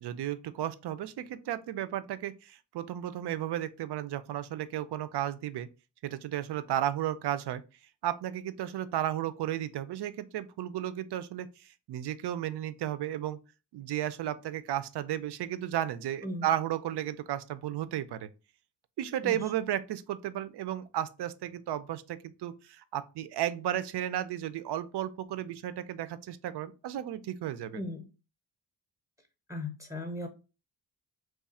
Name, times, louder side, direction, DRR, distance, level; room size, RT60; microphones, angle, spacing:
voice 1, 0.0-5.7 6.0-7.6 8.0-13.4 13.7-18.3 19.0-27.8, right 12 dB, 75° right, 0.5 m, -34 dB
voice 2, 27.7-28.1 29.5-30.3, left 1 dB, 10° right, 0.7 m, -37 dB
3.1 x 2.4 x 4.1 m
wide cardioid pair, 120°, 40 cm